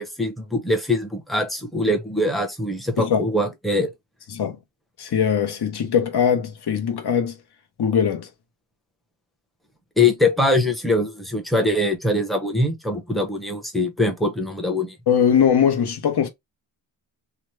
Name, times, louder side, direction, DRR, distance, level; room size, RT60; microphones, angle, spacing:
voice 1, 0.0-3.9 10.0-15.0, left 2 dB, ahead, 0.8 m, -22 dB
voice 2, 5.0-7.4 7.8-8.3 15.1-16.3, left 8 dB, 50° left, 0.9 m, -21 dB
2.9 x 2.2 x 3.0 m
wide cardioid pair, 110°, 49 cm